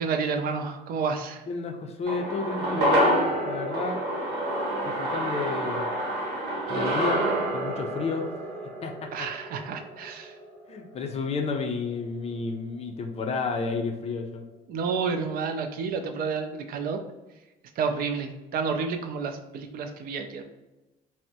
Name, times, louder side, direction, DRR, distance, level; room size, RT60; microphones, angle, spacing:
voice 1, 0.0-1.4 9.1-10.3 14.7-17.0 17.8-20.6, right 5 dB, 60° right, 6 dB, 0.4 m, -30 dB
voice 2, 1.5-4.0 4.8-5.9 6.7-7.2 7.5-8.3 8.8-9.3 10.7-14.4, left 4 dB, 40° left, 4 dB, 0.4 m, -31 dB
sound 1, 2.1-10.6 10.9-11.0, right 1 dB, 80° right, 0.9 m, -28 dB
3.4 x 2.0 x 2.7 m, 1.0 s
cardioid pair, 110°, 17 cm